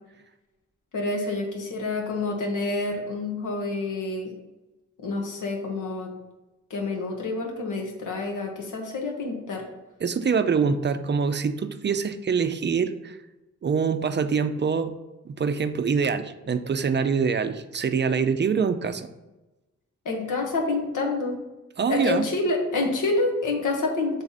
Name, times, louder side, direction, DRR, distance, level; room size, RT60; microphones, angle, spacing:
voice 1, 0.9-4.3 5.0-6.1 6.7-9.6 20.0-21.4 21.9-24.2, left 3 dB, 90° left, 1 dB, 1.3 m, -28 dB
voice 2, 10.0-13.2 13.6-14.9 15.2-19.1 21.8-22.2, right 6 dB, 35° right, 10 dB, 0.4 m, -25 dB
7.0 x 3.5 x 4.0 m, 1.1 s
cardioid pair, 75°, 30 cm